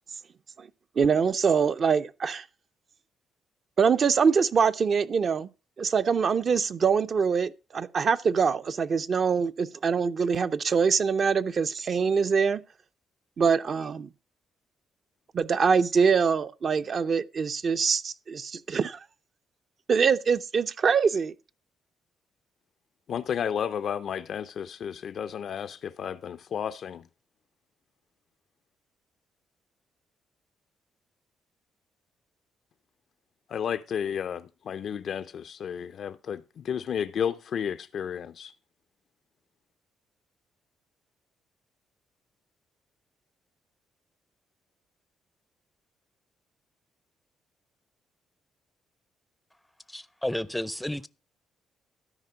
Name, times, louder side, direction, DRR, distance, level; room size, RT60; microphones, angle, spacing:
voice 1, 1.0-2.4 3.8-5.5 5.8-12.6 13.4-14.1 15.3-19.0 19.9-21.3, right 6 dB, 50° right, 0.5 m, -24 dB
voice 2, 23.1-27.0 33.5-38.5, left 8 dB, 60° left, 0.4 m, -32 dB
voice 3, 49.9-51.1, left 1 dB, 5° left, 0.5 m, -32 dB
13.0 x 5.0 x 5.6 m
cardioid pair, 90°, 0 cm